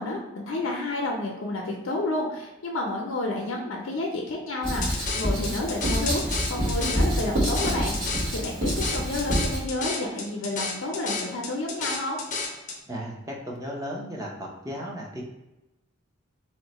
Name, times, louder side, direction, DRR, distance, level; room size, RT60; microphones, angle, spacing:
voice 1, 0.0-12.2, left 2 dB, 85° left, 0 dB, 0.5 m, -30 dB
Writing, 4.6-9.6, equal, 45° right, 1.3 m, -27 dB
sound 1, 4.8-12.8, left 4 dB, 40° left, 0.5 m, -32 dB
voice 2, 12.9-15.2, equal, 15° right, -2 dB, 0.6 m, -35 dB
3.0 x 2.1 x 3.9 m, 0.97 s
head